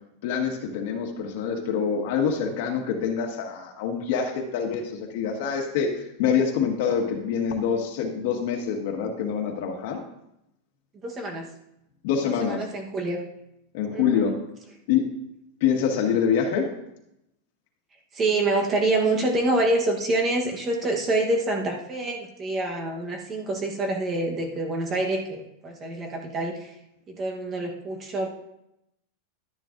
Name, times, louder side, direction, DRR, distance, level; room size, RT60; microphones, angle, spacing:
voice 1, 0.2-5.9 6.2-10.0 12.0-12.6 13.7-14.3 14.9-15.1 15.6-16.7, left 7 dB, 50° left, 3 dB, 1.6 m, -25 dB
voice 2, 11.0-11.5 12.2-13.2 13.9-14.3 18.1-26.7 27.1-28.3, right 2 dB, 20° right, 2 dB, 1.1 m, -26 dB
12.0 x 10.0 x 2.6 m, 0.83 s
supercardioid pair, 175°, 0 cm